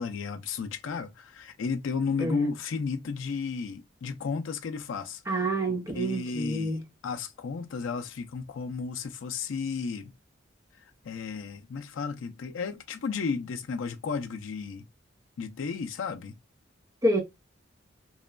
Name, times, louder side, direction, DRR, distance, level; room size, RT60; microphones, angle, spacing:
voice 1, 0.0-5.4 6.0-10.1 11.0-14.9 15.4-16.3, left 5 dB, 80° left, 0.4 m, -33 dB
voice 2, 5.3-6.8 17.0-17.2, right 1 dB, 15° right, 0.7 m, -27 dB
3.0 x 2.2 x 2.2 m
head